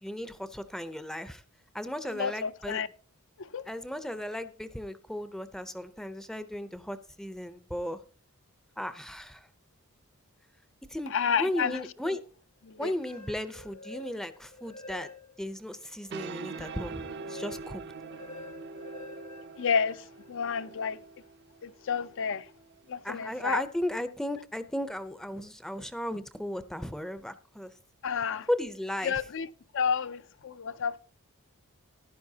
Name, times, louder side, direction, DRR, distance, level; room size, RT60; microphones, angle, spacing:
voice 1, 0.0-1.4 1.7-2.8 3.7-8.0 8.8-9.5 10.9-12.2 12.8-15.1 15.4-17.8 23.0-27.7 28.5-29.1, left 1 dB, ahead, 0.5 m, -35 dB
voice 2, 2.0-2.9 3.4-3.7 11.1-12.2 12.6-12.9 19.6-21.0 21.6-22.5 22.9-23.6 28.0-28.5 29.0-29.5 29.7-31.0, left 6 dB, 60° left, 0.5 m, -31 dB
sound 1, 12.9-15.5 16.0-20.3, left 2 dB, 75° left, 1.6 m, -48 dB
sound 2, 15.8-23.0, right 5 dB, 50° right, 0.5 m, -44 dB
14.5 x 11.0 x 2.8 m
head